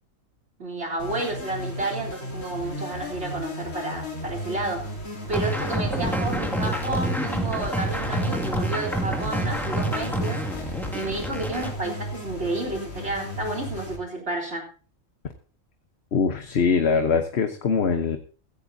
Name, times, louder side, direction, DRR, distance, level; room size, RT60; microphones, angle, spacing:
voice 1, 0.6-4.9 5.3-14.7, right 2 dB, 55° right, 2 dB, 3.9 m, -31 dB
sound 1, 1.0-14.0, left 1 dB, 75° left, 3.7 m, -35 dB
sound 2, 5.3-11.7, right 1 dB, ahead, 2.2 m, -27 dB
voice 2, 16.1-18.2, left 5 dB, 55° left, 6 dB, 1.3 m, -22 dB
15.5 x 15.0 x 2.8 m, 0.38 s
omnidirectional pair, 1.4 m